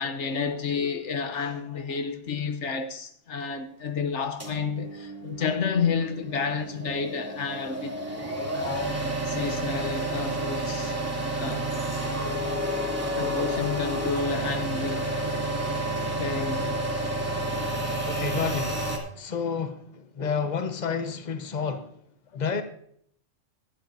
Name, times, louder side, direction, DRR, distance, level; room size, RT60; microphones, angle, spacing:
voice 1, 0.0-8.0 8.5-9.0 9.2-11.7 12.9-15.1 16.2-16.8 18.1-18.2 20.2-20.3, left 5 dB, 70° left, 1.2 m, -31 dB
sound 1, 4.4-19.0, right 1 dB, 10° right, 2.7 m, -30 dB
voice 2, 18.1-21.9 22.3-22.6, left 6 dB, 40° left, 1.2 m, -30 dB
17.0 x 11.5 x 2.7 m
omnidirectional pair, 1.2 m